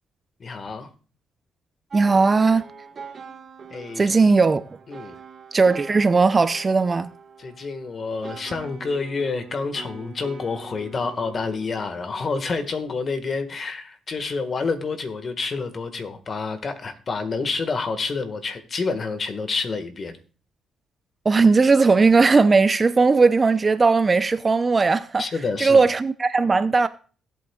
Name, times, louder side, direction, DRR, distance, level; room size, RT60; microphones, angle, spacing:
voice 1, 0.4-0.9 3.7-4.0 4.9-5.2 7.4-20.2 25.2-25.8, left 4 dB, 40° left, 1.6 m, -28 dB
voice 2, 1.9-2.7 4.0-4.6 5.5-7.1 21.2-25.2 25.6-26.9, right 4 dB, 30° right, 0.5 m, -18 dB
sound 1, 1.9-13.0, right 5 dB, 45° right, 1.5 m, -43 dB
16.5 x 8.3 x 2.4 m
cardioid pair, 90°, 0 cm